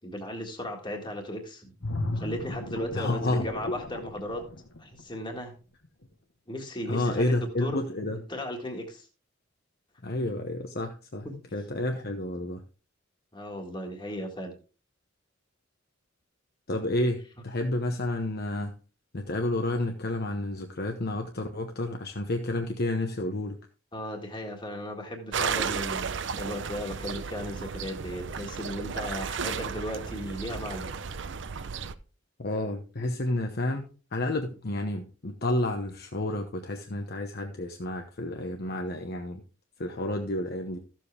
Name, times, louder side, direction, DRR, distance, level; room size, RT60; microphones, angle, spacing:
voice 1, 0.0-1.7 2.1-4.4 4.8-5.5 6.5-7.8 8.1-9.1 11.2-11.3 13.3-14.5 23.9-30.9, equal, 25° left, 2 dB, 1.8 m, -36 dB
sound 1, 1.8-5.4 5.8-6.1, left 2 dB, 85° left, 1.3 m, -35 dB
voice 2, 2.9-3.5 6.9-8.2 10.0-11.3 11.5-12.6 16.7-18.7 19.1-23.6 32.4-33.8 34.1-39.4 39.8-40.8, left 1 dB, 55° left, 4 dB, 1.0 m, -30 dB
sound 2, 25.3-31.9, right 6 dB, 65° right, 0.7 m, -34 dB
13.5 x 7.5 x 3.4 m, 0.36 s
head